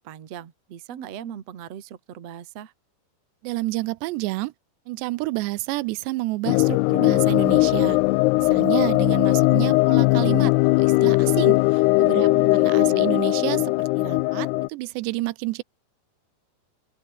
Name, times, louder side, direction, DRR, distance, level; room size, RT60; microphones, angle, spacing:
voice 1, 0.0-2.7 12.1-13.2, right 9 dB, 45° right, 2.5 m, -38 dB
voice 2, 3.4-4.5 4.9-8.0 8.4-12.3 12.7-15.6, right 20 dB, 90° right, 2.9 m, -29 dB
sound 1, 6.5-14.7, left 23 dB, 85° left, 2.4 m, -19 dB
omnidirectional pair, 5.0 m